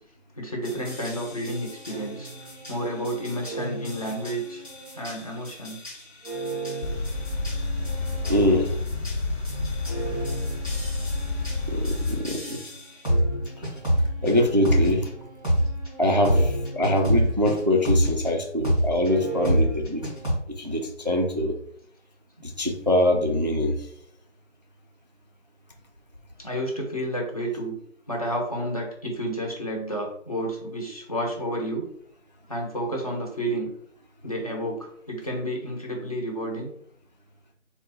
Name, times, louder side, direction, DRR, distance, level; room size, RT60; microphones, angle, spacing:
voice 1, 0.4-4.6 4.9-5.8 26.4-27.8 28.1-31.9 32.5-33.7 34.2-36.7, equal, 30° left, -1 dB, 0.8 m, -31 dB
sound 1, 0.6-18.3 18.6-20.3, equal, 5° left, 0.9 m, -29 dB
sound 2, 6.8-12.2, left 2 dB, 55° left, 0.7 m, -29 dB
voice 2, 8.3-8.7 11.7-12.6 14.2-15.1 16.0-20.1 20.5-21.5 22.4-23.9, left 1 dB, 35° right, 2 dB, 0.4 m, -23 dB
3.8 x 2.2 x 4.2 m, 0.65 s
figure-of-eight pair, 170°, 37 cm